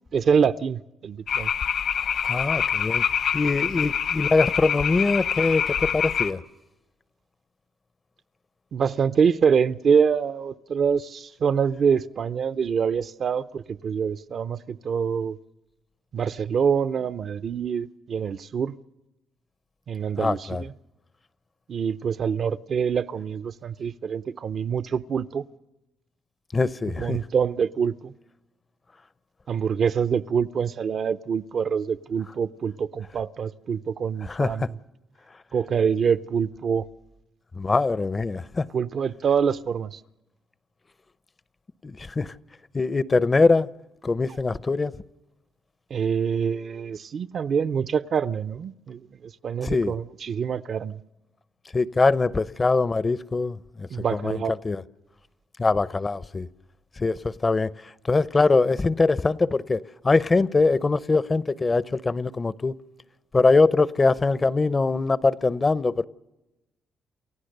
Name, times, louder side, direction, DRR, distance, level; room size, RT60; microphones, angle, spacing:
voice 1, 0.1-1.5 8.7-15.4 16.1-18.7 19.9-20.7 21.7-25.4 27.0-28.1 29.5-34.7 35.5-36.8 38.7-40.0 45.9-51.0 53.9-54.5, right 6 dB, 55° right, 0.6 m, -25 dB
sound 1, 1.3-6.3, left 8 dB, 65° left, 1.3 m, -26 dB
voice 2, 2.3-3.0 3.3-6.4 20.2-20.6 26.5-27.2 34.2-34.7 37.5-38.7 41.8-42.3 42.7-43.7 44.0-44.9 49.6-49.9 51.7-54.8 55.6-56.5 57.0-62.8 63.3-66.0, left 3 dB, 30° left, 0.7 m, -23 dB
29.0 x 15.0 x 6.7 m
cardioid pair, 90°, 0 cm